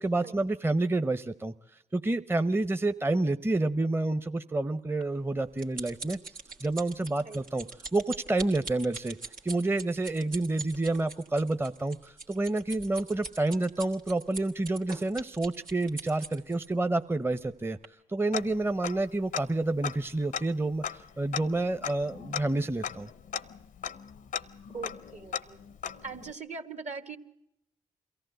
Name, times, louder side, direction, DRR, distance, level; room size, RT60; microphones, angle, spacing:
voice 1, 0.0-1.5 1.9-6.2 6.6-9.2 9.4-17.8 18.1-23.1, right 2 dB, 15° right, 11 dB, 0.7 m, -29 dB
sound 1, 5.0-16.7 17.3-17.5 17.8-17.9, right 3 dB, 85° right, 1.6 m, -43 dB
Tick-tock, 18.3-19.1 19.3-19.4 19.8-26.3, left 8 dB, 75° left, 0.7 m, -38 dB
voice 2, 24.7-25.6 26.0-27.2, right 4 dB, 55° right, 11 dB, 1.5 m, -40 dB
23.0 x 15.0 x 7.9 m, 0.85 s
supercardioid pair, 40°, 14 cm